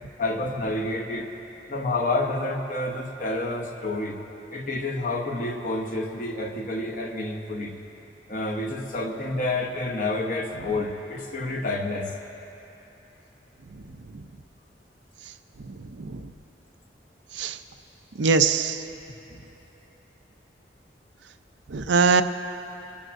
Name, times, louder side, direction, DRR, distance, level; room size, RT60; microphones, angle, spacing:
voice 1, 0.2-1.3 1.7-4.2 4.5-7.8 8.3-12.1 19.3-19.4, left 2 dB, 50° left, 2 dB, 1.0 m, -29 dB
voice 2, 15.6-16.3 17.3-17.6 18.2-18.8 21.7-22.2, right 5 dB, 90° right, 9 dB, 0.5 m, -23 dB
23.5 x 12.5 x 2.6 m, 3.0 s
head